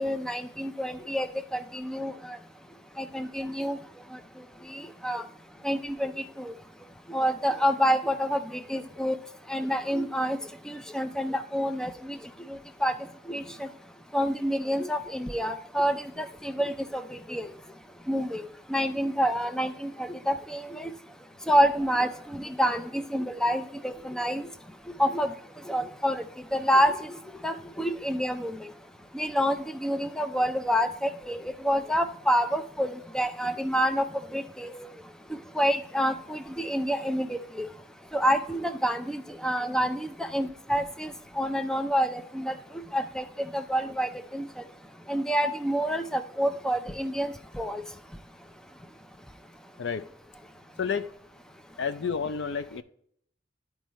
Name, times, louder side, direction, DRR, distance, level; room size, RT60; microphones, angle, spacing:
voice 1, 0.0-2.4 3.0-3.8 4.7-5.2 5.6-6.1 6.4-6.5 7.1-9.1 9.5-10.4 10.7-12.2 12.5-12.9 13.3-13.7 14.1-17.5 18.1-18.4 18.7-20.9 21.5-24.4 25.0-25.3 25.7-26.2 26.5-27.2 27.4-28.6 29.1-34.0 34.3-34.9 35.6-37.7 38.1-42.5 42.9-43.3 43.5-44.5 45.1-47.8, equal, 5° left, 9 dB, 0.4 m, -28 dB
voice 2, 50.8-51.1 51.8-52.8, left 6 dB, 65° left, 12 dB, 0.4 m, -30 dB
11.5 x 4.6 x 3.1 m, 0.66 s
head